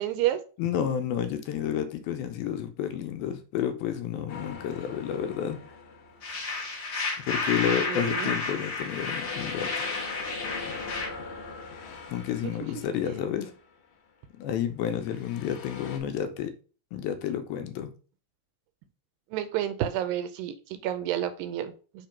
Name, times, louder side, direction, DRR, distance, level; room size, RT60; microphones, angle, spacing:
voice 1, 0.0-0.4 7.9-8.4 12.4-12.5 19.3-22.1, right 12 dB, 80° right, 2.2 m, -30 dB
voice 2, 0.6-5.6 7.3-9.9 12.1-13.5 14.4-16.5 16.9-17.9, left 9 dB, 90° left, 2.6 m, -30 dB
sound 1, 4.3-6.8 7.3-13.8 14.9-16.0, left 5 dB, 65° left, 2.4 m, -42 dB
sound 2, 6.2-11.1, left 3 dB, 45° left, 1.5 m, -32 dB
6.7 x 3.0 x 5.7 m
omnidirectional pair, 4.4 m